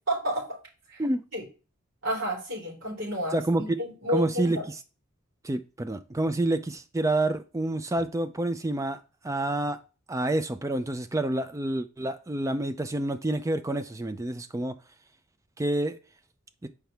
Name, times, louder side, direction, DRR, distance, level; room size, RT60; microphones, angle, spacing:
voice 1, 0.1-0.5 0.9-1.0 1.3-1.4 2.0-4.7, equal, 65° right, 3.6 m, -30 dB
voice 2, 3.3-3.8 4.1-4.8 5.4-9.8 10.1-14.8 15.6-16.0 16.6-16.7, right 1 dB, 15° right, 0.4 m, -28 dB
6.1 x 4.7 x 3.4 m
head